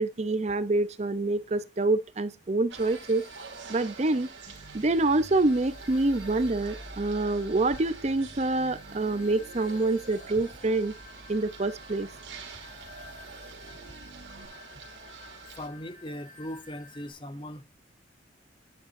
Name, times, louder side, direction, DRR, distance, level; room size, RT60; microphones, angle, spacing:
voice 1, 0.0-3.2 3.7-4.3 4.7-10.9 11.3-12.1, right 2 dB, 35° right, 0.6 m, -26 dB
sound 1, 2.7-17.1, left 2 dB, 45° left, 2.9 m, -53 dB
sound 2, 2.7-15.7, right 5 dB, 90° right, 2.7 m, -47 dB
sound 3, 4.5-14.5, right 1 dB, 50° right, 1.9 m, -49 dB
voice 2, 15.6-17.6, left 1 dB, 25° left, 0.9 m, -39 dB
11.0 x 9.2 x 2.6 m
head